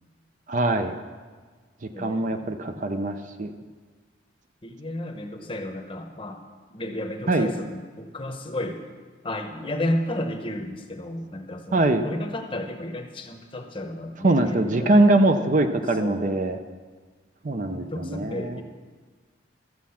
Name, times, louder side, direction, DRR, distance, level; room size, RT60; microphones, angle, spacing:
voice 1, 0.5-0.9 2.0-3.5 7.3-7.5 11.7-12.1 14.2-16.6 17.4-18.6, right 2 dB, 40° right, 7 dB, 0.5 m, -22 dB
voice 2, 1.9-2.6 4.6-6.4 6.7-8.8 9.2-15.0 16.0-16.3 17.5-18.6, left 1 dB, 25° left, 4 dB, 0.9 m, -32 dB
13.0 x 7.2 x 5.7 m, 1.5 s
head